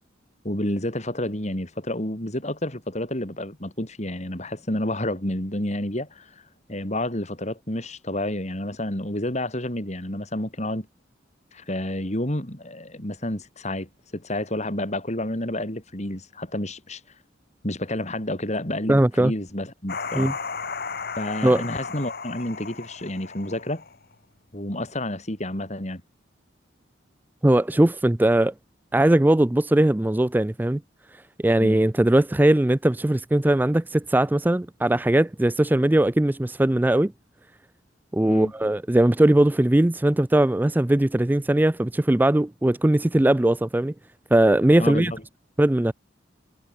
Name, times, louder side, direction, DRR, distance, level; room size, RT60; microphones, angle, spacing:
voice 1, 0.4-10.9 11.5-17.2 17.6-20.3 21.2-23.8 24.5-26.0 31.6-31.8 38.3-38.5 44.8-45.2, left 1 dB, 35° left, 4.0 m, -30 dB
voice 2, 18.9-19.3 20.2-20.3 21.4-21.6 27.4-28.5 28.9-30.8 31.4-37.1 38.1-43.9 44.3-45.1 45.6-45.9, right 1 dB, 10° right, 0.4 m, -20 dB
sound 1, 19.9-24.1, left 5 dB, 50° left, 1.7 m, -34 dB
head